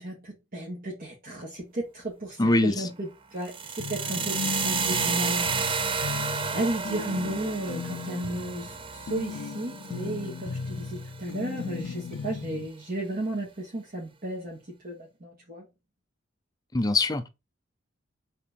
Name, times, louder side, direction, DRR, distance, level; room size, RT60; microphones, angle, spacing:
voice 1, 0.0-5.6 6.5-15.7, right 1 dB, 45° right, 2.0 m, -34 dB
voice 2, 2.4-2.9 16.7-17.3, left 2 dB, 20° left, 0.5 m, -23 dB
sound 1, 3.4-11.5, right 5 dB, 25° right, 0.5 m, -31 dB
sound 2, 3.8-12.7, left 5 dB, 65° left, 0.4 m, -37 dB
4.9 x 3.9 x 5.2 m
head